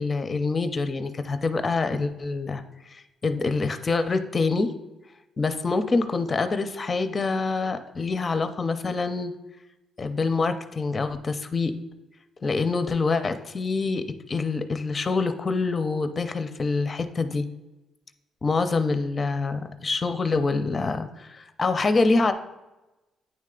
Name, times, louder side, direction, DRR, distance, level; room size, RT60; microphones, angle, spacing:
voice 1, 0.0-4.7 5.4-9.3 10.0-11.7 12.4-17.5 18.4-22.3, left 3 dB, 35° left, 10 dB, 0.5 m, -26 dB
9.0 x 3.2 x 3.7 m, 1.0 s
cardioid pair, 90°, 0 cm